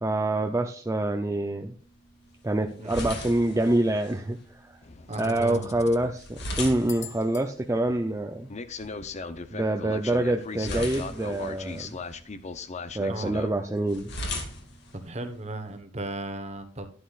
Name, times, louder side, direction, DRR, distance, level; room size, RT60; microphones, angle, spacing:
voice 1, 0.0-1.7 2.4-4.8 5.2-8.5 9.5-12.0 12.9-14.1, right 1 dB, 15° right, 4 dB, 0.6 m, -26 dB
sound 1, 1.8-15.8, left 2 dB, 60° left, 2.1 m, -41 dB
sound 2, 4.8-6.1 6.9-7.4 8.5-13.5, left 4 dB, 35° left, 0.7 m, -38 dB
voice 2, 5.1-5.7 13.1-13.4 14.9-16.9, right 2 dB, 35° right, 8 dB, 1.2 m, -35 dB
11.5 x 10.5 x 2.5 m, 0.43 s
head